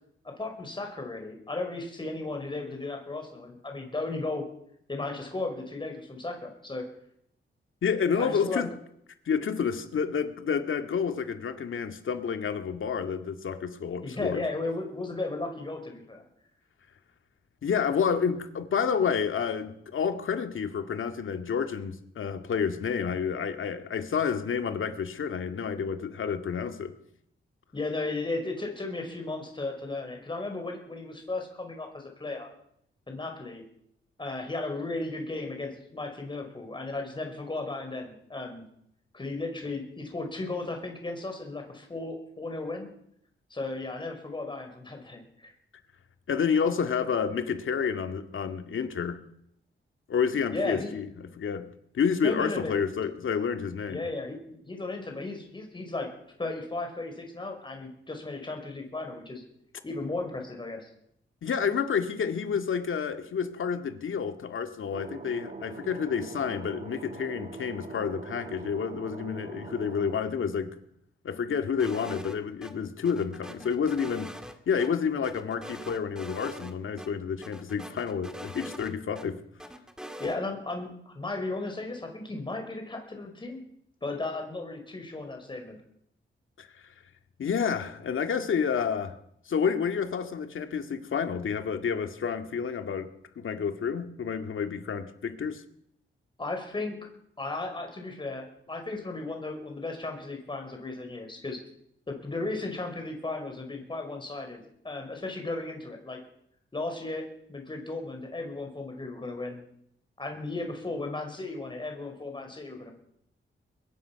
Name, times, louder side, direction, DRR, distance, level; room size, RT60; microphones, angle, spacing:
voice 1, 0.2-4.4 4.9-6.8 8.2-8.7 14.0-16.2 27.7-32.5 33.1-33.6 34.2-38.7 39.1-42.9 43.5-45.5 50.5-50.9 52.2-52.8 53.9-56.1 56.4-59.4 59.8-60.9 80.2-83.6 84.0-85.8 96.4-97.0 97.4-101.6 102.1-106.2 106.7-109.6 110.2-112.9, left 2 dB, 25° left, 4 dB, 5.0 m, -35 dB
voice 2, 7.8-8.7 9.3-14.4 17.6-27.0 46.3-49.2 50.1-51.1 51.4-51.7 51.9-54.1 61.4-70.7 71.2-74.3 74.7-79.4 86.6-86.9 87.4-89.2 89.5-95.6, left 6 dB, 75° left, 7 dB, 2.0 m, -29 dB
sound 1, 64.9-70.1, right 4 dB, 40° right, 1.8 m, -42 dB
sound 2, 71.8-72.7 73.1-74.9 75.2-76.7 77.0-77.1 77.4-79.3 79.6-80.4, equal, 5° right, 2.0 m, -43 dB
23.5 x 21.0 x 5.9 m, 0.72 s
wide cardioid pair, 145°, 21 cm